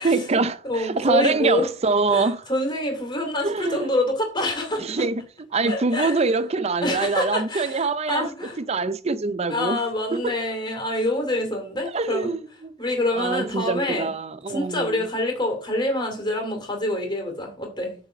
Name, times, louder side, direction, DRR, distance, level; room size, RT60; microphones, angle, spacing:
voice 1, 0.0-2.4 3.4-3.9 4.8-5.3 5.5-8.3 8.6-10.3 11.9-12.7 13.1-15.1, right 3 dB, 35° right, 0.6 m, -24 dB
voice 2, 0.6-1.7 2.1-5.0 5.7-6.2 6.8-8.6 9.5-12.3 12.8-14.1 14.5-18.0, left 1 dB, 25° left, 2.6 m, -26 dB
8.4 x 4.1 x 7.0 m
head